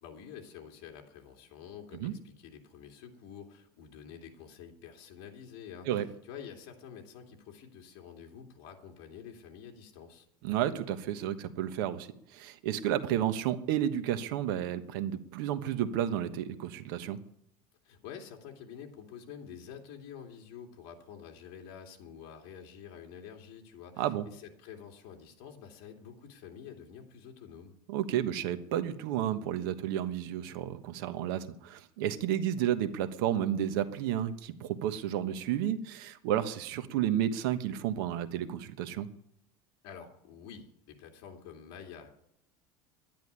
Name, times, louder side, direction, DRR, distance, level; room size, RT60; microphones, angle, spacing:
voice 1, 0.0-10.3 17.8-27.7 39.8-42.1, left 7 dB, 55° left, 2 dB, 2.7 m, -48 dB
voice 2, 10.4-17.2 24.0-24.3 27.9-39.1, right 11 dB, 75° right, 10 dB, 1.3 m, -31 dB
11.5 x 10.5 x 9.5 m, 0.73 s
cardioid pair, 165°, 12 cm